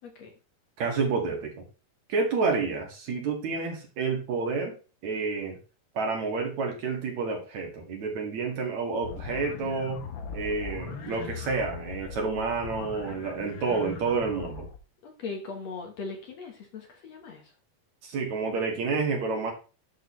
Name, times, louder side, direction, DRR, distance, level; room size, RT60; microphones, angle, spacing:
voice 1, 0.0-0.3 15.0-17.5, left 4 dB, 60° left, 3 dB, 2.3 m, -39 dB
voice 2, 0.8-1.6 2.1-4.7 5.0-5.6 5.9-10.0 10.3-14.6 18.0-19.5, right 4 dB, 60° right, 1 dB, 3.2 m, -29 dB
sound 1, 9.0-14.8, left 5 dB, 80° left, 1.1 m, -40 dB
11.0 x 6.5 x 3.2 m, 0.33 s
omnidirectional pair, 3.9 m